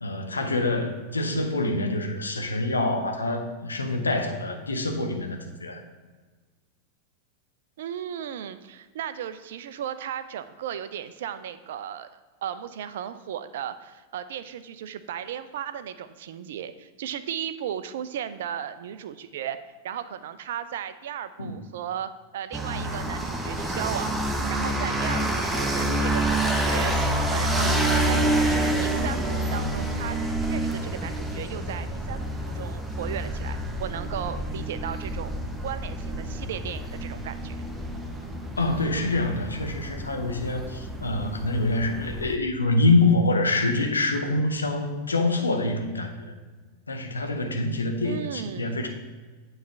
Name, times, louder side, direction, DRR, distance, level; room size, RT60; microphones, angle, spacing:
voice 1, 0.0-5.8 21.4-21.6 38.6-46.3 46.9-48.9, left 2 dB, 75° left, 4 dB, 0.8 m, -26 dB
voice 2, 7.8-19.6 19.8-24.1 24.5-27.7 28.1-30.2 30.5-35.4 35.6-37.6 48.0-48.8, right 9 dB, 55° right, 12 dB, 0.4 m, -35 dB
sound 1, 22.5-42.3, right 1 dB, 5° right, 0.7 m, -28 dB
9.2 x 3.2 x 5.8 m, 1.4 s
figure-of-eight pair, 90°, 0 cm